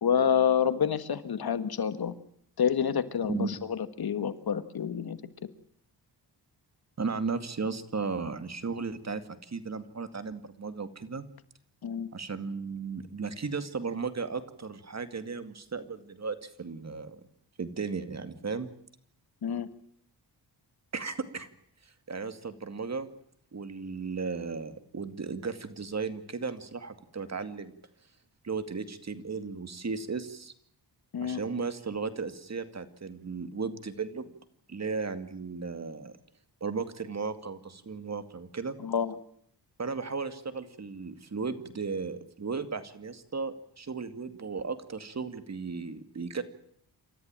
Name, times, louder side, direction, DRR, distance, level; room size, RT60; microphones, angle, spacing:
voice 1, 0.0-2.1 2.6-5.2 11.8-12.1 19.4-19.7 31.1-31.4 38.8-39.2, left 8 dB, 60° left, 12 dB, 1.7 m, -28 dB
voice 2, 7.0-11.2 12.1-17.2 17.6-18.7 20.9-21.5 21.8-23.1 23.5-27.7 28.4-30.5 31.2-34.3 34.7-36.2 36.6-38.8 39.8-46.4, right 4 dB, 40° right, 11 dB, 2.3 m, -35 dB
28.0 x 14.0 x 9.0 m, 0.68 s
cardioid pair, 85°, 41 cm